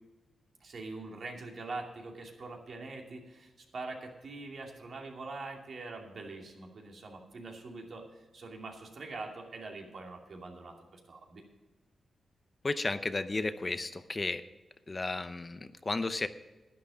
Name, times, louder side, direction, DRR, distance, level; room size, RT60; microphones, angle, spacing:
voice 1, 0.6-11.4, right 3 dB, 65° right, 1 dB, 2.5 m, -44 dB
voice 2, 12.6-14.4 14.9-16.3, left 3 dB, 30° left, 11 dB, 0.6 m, -33 dB
11.5 x 10.5 x 5.1 m, 1.2 s
cardioid pair, 85°, 0 cm